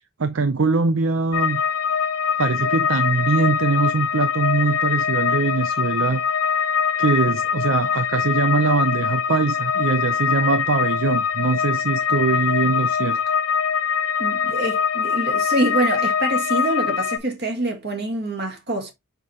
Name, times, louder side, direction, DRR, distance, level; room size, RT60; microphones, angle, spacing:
voice 1, 0.2-1.6 2.4-6.2 7.0-13.2, right 4 dB, 65° right, 0.6 m, -22 dB
sound 1, 1.3-17.2, left 7 dB, 85° left, 0.9 m, -23 dB
voice 2, 14.2-18.9, right 1 dB, 50° right, 2.0 m, -25 dB
5.7 x 5.6 x 3.1 m
head